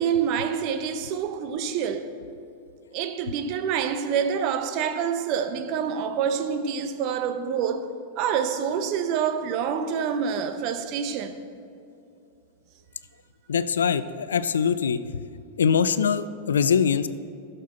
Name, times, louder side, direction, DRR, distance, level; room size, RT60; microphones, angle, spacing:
voice 1, 0.0-2.2 2.9-11.4, right 7 dB, 50° right, 0.8 m, -27 dB
voice 2, 13.5-15.0 15.6-17.1, left 7 dB, 85° left, 0.4 m, -22 dB
14.5 x 6.6 x 4.3 m
hypercardioid pair, 100°, 0 cm